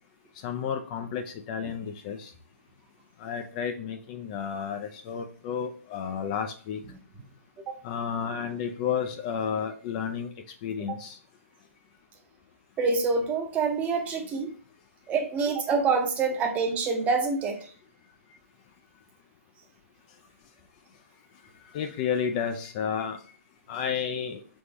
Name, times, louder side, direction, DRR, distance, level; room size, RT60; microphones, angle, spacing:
voice 1, 0.4-2.3 3.2-6.8 7.8-10.3 10.6-11.2 21.7-23.2 23.7-24.4, left 7 dB, 30° left, 0.4 m, -31 dB
voice 2, 12.8-14.5 15.1-17.7, right 4 dB, 20° right, 0.7 m, -26 dB
3.8 x 3.5 x 3.3 m
figure-of-eight pair, 125°, 8 cm